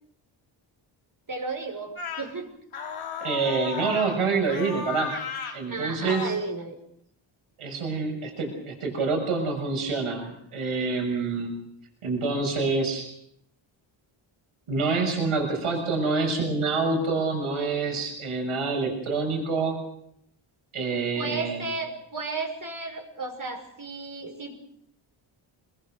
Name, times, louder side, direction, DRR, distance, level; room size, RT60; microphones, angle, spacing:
voice 1, 1.3-2.5 5.7-6.8 20.8-24.6, right 3 dB, 40° right, 3 dB, 5.9 m, -34 dB
sound 1, 2.0-2.3 2.7-4.2 4.5-5.6 6.1-6.4, left 6 dB, 75° left, 3.5 m, -34 dB
voice 2, 3.2-5.2 5.5-6.4 7.6-11.5 12.0-13.1 14.7-19.8 20.7-21.7, right 4 dB, 80° right, 3 dB, 6.7 m, -27 dB
24.5 x 21.0 x 6.5 m, 0.72 s
cardioid pair, 75°, 50 cm